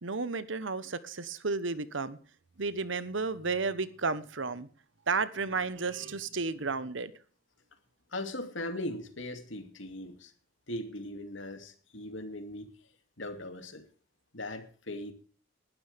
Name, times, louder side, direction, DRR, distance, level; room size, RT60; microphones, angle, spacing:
voice 1, 0.0-2.2 2.6-4.7 5.1-7.1, right 4 dB, 65° right, 1.2 m, -32 dB
voice 2, 8.1-10.3 10.7-12.7 13.2-13.8 14.3-15.1, left 1 dB, 65° left, 2.6 m, -39 dB
20.0 x 12.5 x 3.5 m
head